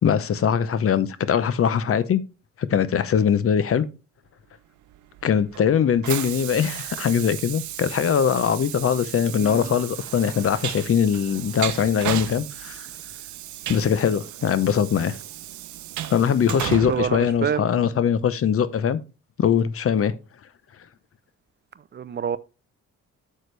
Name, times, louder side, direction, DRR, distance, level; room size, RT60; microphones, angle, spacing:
voice 1, 0.0-2.2 2.6-3.9 5.2-12.9 13.7-15.2 16.1-19.0 19.4-20.1, left 8 dB, 50° left, 0.8 m, -21 dB
Train, 4.9-18.1, right 13 dB, 75° right, 0.7 m, -35 dB
voice 2, 9.4-9.8 16.9-17.9 21.9-22.4, right 7 dB, 35° right, 0.5 m, -27 dB
9.2 x 6.6 x 3.3 m
cardioid pair, 90°, 30 cm